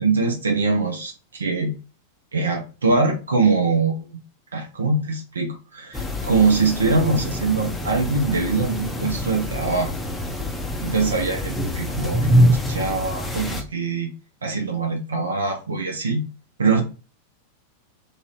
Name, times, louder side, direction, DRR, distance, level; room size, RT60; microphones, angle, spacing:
voice 1, 0.0-1.7 2.3-4.2 4.5-9.9 10.8-14.1 14.4-16.2 16.6-16.8, right 4 dB, 70° right, 3 dB, 0.5 m, -23 dB
sound 1, 5.9-13.6, equal, 5° left, 0.6 m, -25 dB
2.6 x 2.5 x 3.1 m, 0.33 s
figure-of-eight pair, 90°, 0 cm